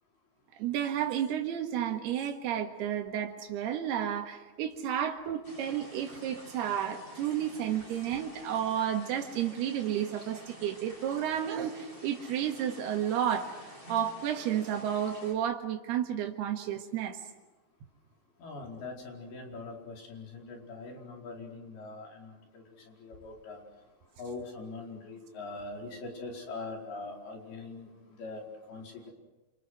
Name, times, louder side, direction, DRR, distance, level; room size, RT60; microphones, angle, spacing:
voice 1, 0.6-17.2, right 10 dB, 90° right, 3 dB, 3.7 m, -32 dB
sound 1, 5.4-15.3, equal, 10° left, 7.7 m, -50 dB
voice 2, 18.4-23.6 24.2-29.1, left 3 dB, 75° left, 0 dB, 6.7 m, -42 dB
28.5 x 28.0 x 6.4 m, 1.1 s
omnidirectional pair, 4.5 m